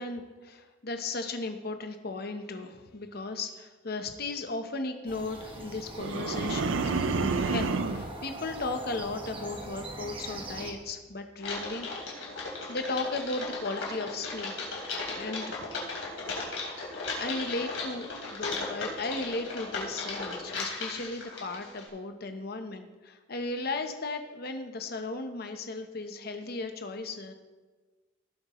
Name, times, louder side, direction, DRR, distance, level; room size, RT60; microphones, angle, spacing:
voice 1, 0.0-12.2 12.5-14.5 15.1-15.7 17.2-27.3, left 3 dB, 50° left, 6 dB, 0.9 m, -36 dB
sound 1, 5.1-10.7, right 1 dB, 25° right, 1.3 m, -42 dB
sound 2, 6.0-8.1, right 4 dB, 75° right, 0.5 m, -29 dB
Typing, 11.4-21.9, left 3 dB, 75° left, 3.3 m, -36 dB
17.5 x 8.0 x 3.1 m, 1.3 s
head